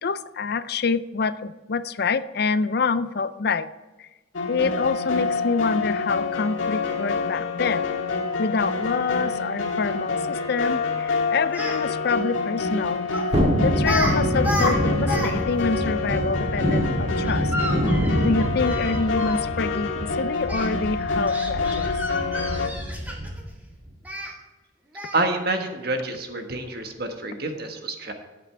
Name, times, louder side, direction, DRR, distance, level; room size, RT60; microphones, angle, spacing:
voice 1, 0.0-3.7 4.0-4.1 4.5-7.9 8.4-13.0 13.6-17.5 18.2-21.9, left 4 dB, 55° left, 14 dB, 0.5 m, -26 dB
sound 1, 4.3-22.7, left 4 dB, 85° left, 1.7 m, -27 dB
Speech, 11.5-11.8 13.1-13.3 13.8-14.1 14.4-15.3 15.6-15.7 17.2-19.4 20.5-20.7 21.3-23.4 24.1-24.3 25.0-25.3, equal, 10° right, 1.9 m, -30 dB
Thunderstorm, 13.3-23.5 23.9-24.0, equal, 30° right, 1.7 m, -26 dB
voice 2, 25.1-28.1, right 2 dB, 50° right, 4 dB, 1.5 m, -28 dB
13.0 x 8.3 x 3.4 m, 1.2 s
head